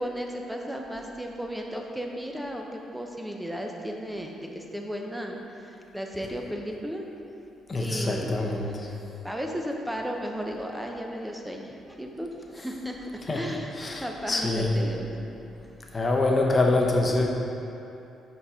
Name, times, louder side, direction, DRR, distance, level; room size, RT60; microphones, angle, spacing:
voice 1, 0.0-7.0 7.8-8.3 9.2-15.2, equal, 5° right, 1 dB, 0.7 m, -35 dB
voice 2, 7.7-8.9 13.3-13.4 13.8-14.7 15.9-17.3, left 2 dB, 30° left, 0 dB, 0.8 m, -25 dB
5.6 x 4.2 x 4.9 m, 2.8 s
cardioid pair, 90°, 0 cm